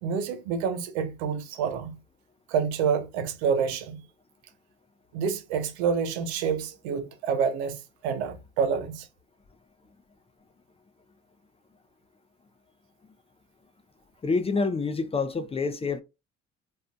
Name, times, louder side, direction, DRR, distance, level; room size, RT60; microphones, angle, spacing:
voice 1, 0.0-2.0 2.5-4.0 5.1-7.8 8.0-9.1, right 6 dB, 90° right, 0.5 m, -28 dB
voice 2, 14.2-16.0, left 4 dB, 20° left, 0.4 m, -27 dB
2.5 x 2.3 x 2.3 m
hypercardioid pair, 60°, 32 cm